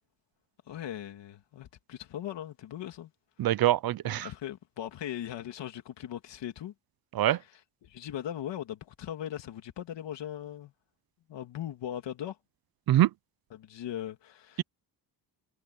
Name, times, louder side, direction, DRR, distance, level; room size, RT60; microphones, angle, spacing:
voice 1, 0.7-3.1 4.0-6.7 7.8-10.7 11.3-12.4 13.5-14.6, left 11 dB, 75° left, 2.7 m, -39 dB
voice 2, 3.4-4.3 7.1-7.4 12.9-13.1, right 13 dB, 55° right, 0.6 m, -24 dB
wide cardioid pair, 175°, 44 cm